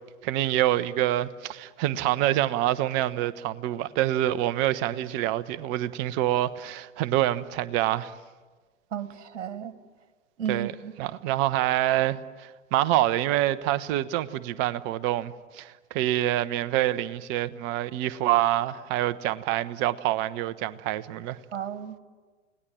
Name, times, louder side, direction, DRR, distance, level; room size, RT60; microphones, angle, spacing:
voice 1, 0.2-8.1 10.5-10.7 11.0-21.4, right 14 dB, 30° right, 0.9 m, -26 dB
voice 2, 8.9-9.7 10.4-10.9 21.5-21.9, right 8 dB, 60° right, 1.8 m, -33 dB
29.5 x 18.5 x 7.6 m
figure-of-eight pair, 100°, 38 cm